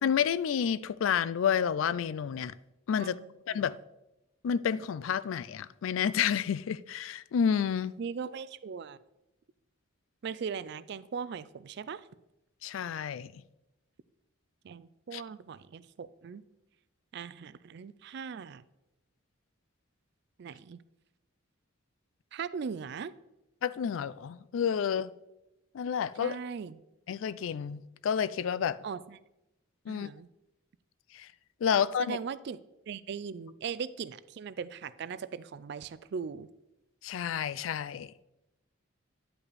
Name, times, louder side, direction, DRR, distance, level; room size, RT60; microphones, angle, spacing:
voice 1, 0.0-2.5 2.9-3.2 3.5-3.8 4.4-7.9 12.6-13.3 15.1-15.2 23.6-25.1 25.7-26.4 27.1-28.8 29.9-30.1 31.1-31.3 31.6-32.2 37.0-38.1, left 8 dB, 75° left, 0.3 m, -30 dB
voice 2, 3.0-3.7 8.0-9.0 10.2-12.1 14.6-16.4 17.1-18.6 20.4-20.8 22.3-23.1 26.2-26.8 28.8-29.2 29.9-30.3 32.0-32.6 32.9-36.5, right 6 dB, 55° right, 0.3 m, -39 dB
9.9 x 5.5 x 4.1 m
head